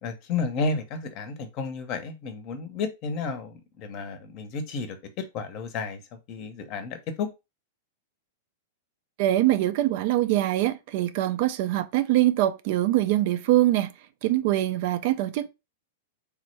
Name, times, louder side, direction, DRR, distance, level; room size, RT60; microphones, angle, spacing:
voice 1, 0.0-6.0 6.3-7.3, left 4 dB, 40° left, 0.7 m, -32 dB
voice 2, 9.2-13.9 14.2-15.5, right 14 dB, 55° right, 0.3 m, -23 dB
3.4 x 2.1 x 3.0 m
hypercardioid pair, 135°, 0 cm